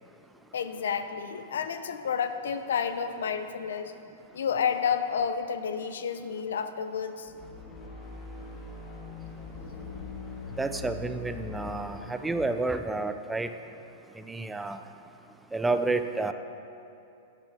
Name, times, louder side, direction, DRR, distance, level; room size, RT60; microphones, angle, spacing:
voice 1, 0.5-3.9 4.3-7.3, left 7 dB, 85° left, 10 dB, 0.5 m, -30 dB
sound 1, 7.2-12.5, left 3 dB, 35° left, 1.5 m, -42 dB
voice 2, 10.6-13.5 14.3-14.8 15.5-16.3, right 3 dB, 10° right, 9 dB, 0.4 m, -30 dB
9.0 x 6.5 x 5.0 m, 2.7 s
hypercardioid pair, 130°, 0 cm